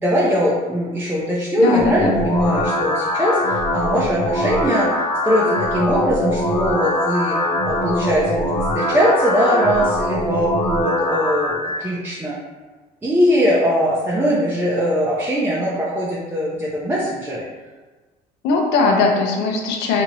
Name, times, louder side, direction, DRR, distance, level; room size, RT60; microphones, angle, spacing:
voice 1, 0.0-7.4 7.6-12.4 13.0-17.4, equal, 15° right, -6 dB, 0.6 m, -21 dB
voice 2, 1.6-2.2 18.4-20.0, left 3 dB, 90° left, 1 dB, 0.7 m, -19 dB
sound 1, 1.8-11.8, left 1 dB, 30° left, 0.4 m, -22 dB
4.3 x 2.9 x 2.7 m, 1.3 s
cardioid pair, 110°, 17 cm